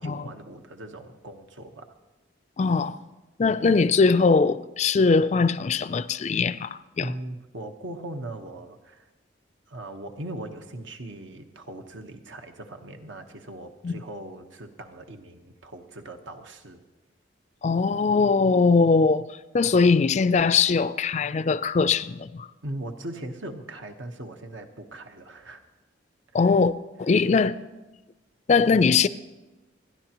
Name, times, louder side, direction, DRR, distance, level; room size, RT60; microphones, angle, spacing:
voice 1, 0.0-1.9 7.0-9.1 9.7-16.8 22.6-25.6 26.4-26.5 27.1-27.2, right 1 dB, 75° right, 1.1 m, -39 dB
voice 2, 2.6-3.0 3.4-7.1 13.8-13.9 17.6-22.5 26.3-26.7 27.0-27.5 28.5-29.1, left 4 dB, 35° left, 0.3 m, -21 dB
29.5 x 10.5 x 3.0 m
head